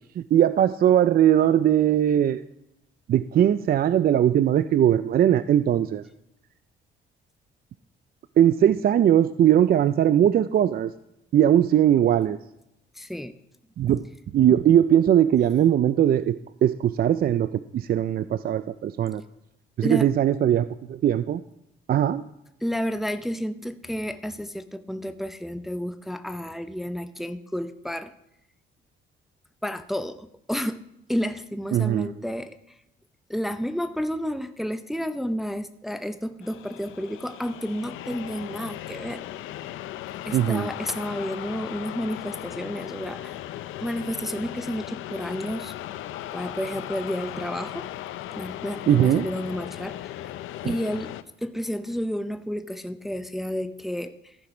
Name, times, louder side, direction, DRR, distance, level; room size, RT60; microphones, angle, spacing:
voice 1, 0.2-2.4 3.1-6.0 8.4-10.9 11.3-12.4 13.8-14.0 14.3-19.2 19.8-21.4 21.9-22.2 31.7-32.1 40.3-40.7 48.9-49.3 50.6-50.7, right 10 dB, 50° right, 14 dB, 0.4 m, -20 dB
voice 2, 12.9-13.4 19.8-20.1 22.6-28.1 29.6-30.8 31.1-32.8 33.3-39.3 40.2-43.4 43.8-45.7 46.3-47.9 48.3-50.3 50.6-54.4, equal, ahead, 9 dB, 0.6 m, -31 dB
sound 1, 36.4-51.2, left 13 dB, 85° left, 0.5 m, -37 dB
14.0 x 5.9 x 4.9 m, 0.84 s
cardioid pair, 90°, 20 cm